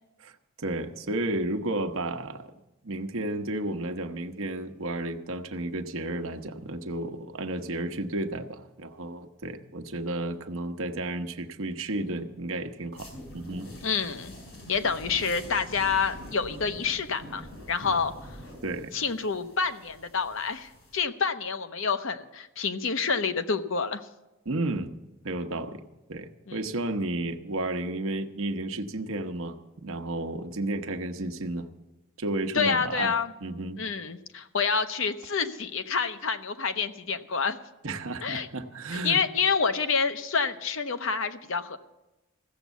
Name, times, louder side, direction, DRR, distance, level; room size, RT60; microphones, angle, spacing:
voice 1, 0.6-2.5 2.8-13.7 18.6-18.9 24.4-24.9 25.2-25.8 26.1-31.7 32.2-33.1 33.4-33.8 37.8-39.2, right 2 dB, 75° right, 7 dB, 0.9 m, -32 dB
sound 1, 12.9-21.0, equal, 85° left, 4.8 m, -45 dB
voice 2, 13.8-14.3 14.7-18.1 18.9-24.0 26.5-26.6 32.5-33.3 33.8-37.6 38.2-38.5 38.9-41.8, left 5 dB, 70° left, 9 dB, 0.8 m, -28 dB
15.5 x 7.3 x 8.1 m, 1.0 s
head